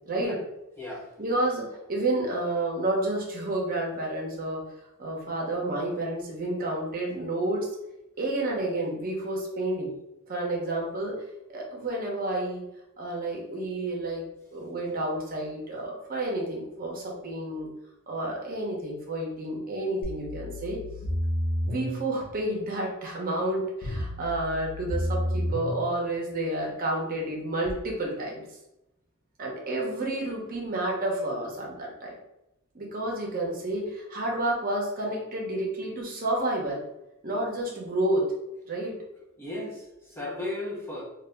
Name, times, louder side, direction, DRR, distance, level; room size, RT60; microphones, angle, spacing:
voice 1, 0.1-0.4 1.2-4.6 5.0-7.7 8.2-9.9 10.3-11.2 11.5-12.6 13.0-14.2 14.5-17.7 18.1-20.8 21.7-28.5 29.4-32.1 32.7-36.8 37.2-38.3 38.7-39.0, right 1 dB, 45° right, -2 dB, 0.8 m, -30 dB
voice 2, 0.8-1.1 39.4-41.0, left 2 dB, 10° left, -4 dB, 0.6 m, -35 dB
sound 1, 20.0-22.0 23.8-25.8 27.7-27.8, left 1 dB, 80° left, 0.5 m, -30 dB
2.7 x 2.3 x 3.4 m, 0.90 s
head